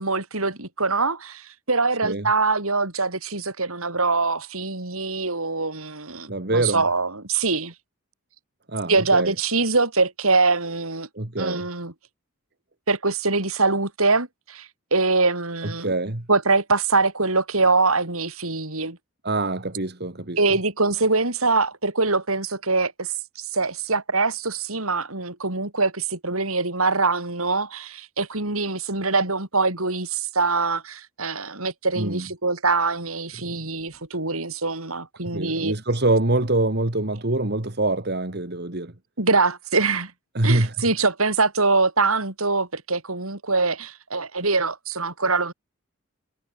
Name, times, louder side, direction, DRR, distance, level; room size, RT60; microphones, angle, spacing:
voice 1, 0.0-7.7 8.9-11.1 11.4-11.9 12.9-15.9 16.3-19.0 20.4-35.8 39.2-40.1 40.4-45.5, right 3 dB, 80° right, 5.8 m, -23 dB
voice 2, 6.3-6.8 8.7-9.3 11.2-11.7 15.6-16.3 19.2-20.4 32.0-32.3 33.4-33.5 35.3-38.9 40.3-40.7, right 2 dB, 50° right, 2.1 m, -24 dB
head